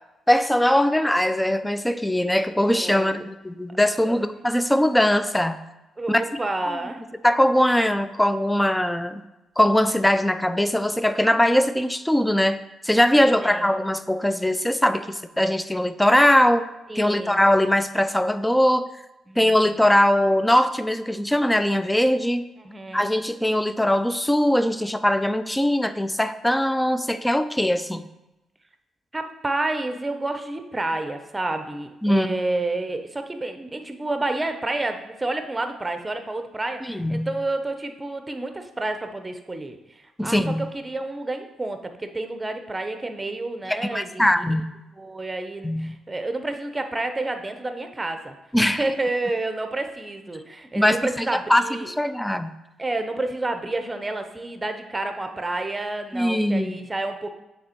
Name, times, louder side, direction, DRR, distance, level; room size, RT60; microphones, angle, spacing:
voice 1, 0.3-5.6 6.1-6.2 6.6-6.8 7.2-9.2 9.6-16.7 17.0-18.9 19.4-22.4 22.9-28.0 32.0-32.4 36.8-37.3 40.2-40.7 43.7-44.6 45.6-46.0 48.5-48.8 50.8-52.5 56.1-56.9, left 1 dB, 10° left, 11 dB, 0.4 m, -21 dB
voice 2, 2.7-3.2 4.1-4.3 6.0-7.0 13.1-13.7 16.9-17.4 19.3-19.7 22.6-23.1 29.1-44.5 45.0-48.3 48.8-51.9 52.8-57.3, right 2 dB, 20° right, 7 dB, 0.7 m, -30 dB
6.5 x 3.5 x 4.4 m, 0.97 s
cardioid pair, 70°, 0 cm